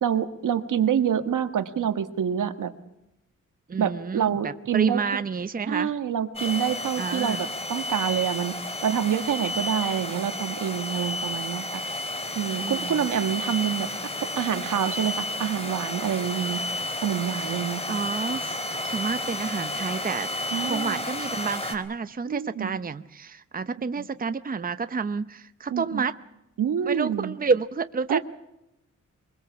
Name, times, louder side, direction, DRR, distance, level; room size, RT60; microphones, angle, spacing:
voice 1, 0.0-2.7 3.8-5.2 5.7-8.5 8.8-11.8 12.3-13.9 14.4-16.6 17.0-18.0 20.5-21.0 22.3-22.8 25.7-26.0 26.6-27.3 28.1-28.2, right 9 dB, 80° right, 9 dB, 1.6 m, -27 dB
voice 2, 3.7-5.9 7.0-7.4 12.6-13.1 17.9-18.6 18.8-20.3 20.6-26.1 26.9-28.2, right 5 dB, 30° right, 11 dB, 0.8 m, -29 dB
sound 1, 6.4-21.8, left 1 dB, 20° left, 3.3 m, -32 dB
23.5 x 21.5 x 7.1 m, 0.86 s
wide cardioid pair, 105°, 31 cm